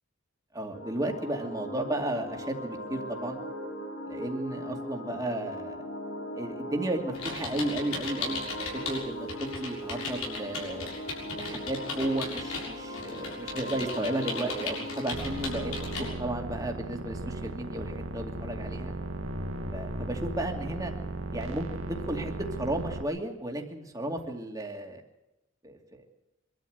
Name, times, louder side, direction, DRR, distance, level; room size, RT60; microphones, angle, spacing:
voice 1, 0.5-3.4 4.1-5.8 6.3-8.5 8.9-11.0 11.3-18.9 19.7-20.9 21.3-22.3 22.6-25.0 25.6-26.1, right 1 dB, 15° right, 2 dB, 2.6 m, -34 dB
sound 1, 0.7-16.1, equal, 65° left, 7.6 m, -39 dB
sound 2, 7.1-9.0 9.3-16.1, left 3 dB, 90° left, 6.9 m, -37 dB
sound 3, 15.1-23.0, right 2 dB, 75° right, 2.0 m, -36 dB
25.0 x 13.0 x 8.1 m, 0.92 s
head